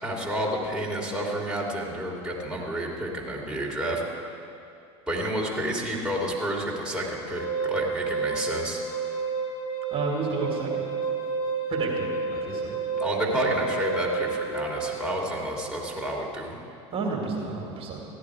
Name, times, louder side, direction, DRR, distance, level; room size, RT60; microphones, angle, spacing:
voice 1, 0.0-4.0 5.1-8.8 13.0-16.6, right 1 dB, 5° right, -3 dB, 2.6 m, -30 dB
Wind instrument woodwind instrument, 7.2-15.1, right 4 dB, 35° left, 1.9 m, -30 dB
voice 2, 9.9-10.7 11.7-12.7 16.9-18.1, right 4 dB, 35° right, -1 dB, 2.2 m, -31 dB
15.0 x 10.5 x 4.8 m, 2.5 s
hypercardioid pair, 85°, 15 cm